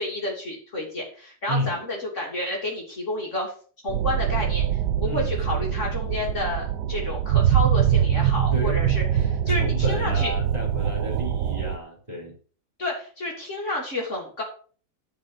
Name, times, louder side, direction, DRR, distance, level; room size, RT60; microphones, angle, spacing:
voice 1, 0.0-3.5 3.8-10.3 12.8-14.4, left 1 dB, 40° left, -1 dB, 3.3 m, -30 dB
voice 2, 1.5-1.8 5.0-5.4 8.5-8.9 9.5-12.3, equal, 20° right, 0 dB, 4.2 m, -31 dB
sound 1, 3.9-11.8, right 9 dB, 70° right, 1.3 m, -23 dB
12.0 x 5.3 x 7.9 m, 0.42 s
omnidirectional pair, 1.9 m